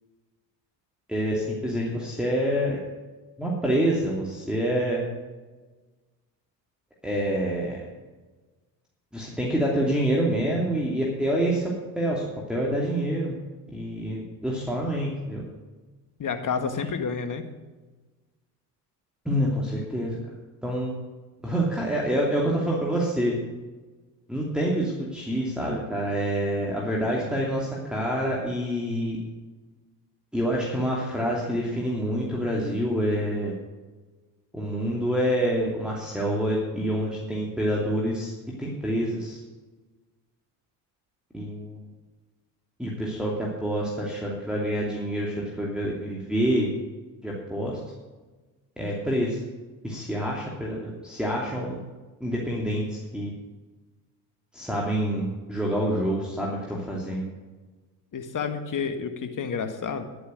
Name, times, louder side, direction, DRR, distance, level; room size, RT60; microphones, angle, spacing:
voice 1, 1.1-2.8 3.4-5.0 7.0-7.9 9.1-13.3 13.7-15.4 19.2-20.2 20.6-20.9 21.4-23.3 24.3-29.2 30.3-33.5 34.5-38.3 38.6-39.4 41.3-41.9 42.8-46.7 47.2-47.8 48.8-49.4 49.8-51.8 52.2-53.3 54.5-57.2, equal, ahead, -5 dB, 2.8 m, -27 dB
voice 2, 16.2-17.4 58.1-60.1, left 6 dB, 40° left, 8 dB, 1.8 m, -29 dB
11.5 x 8.6 x 6.5 m, 1.3 s
hypercardioid pair, 65°, 49 cm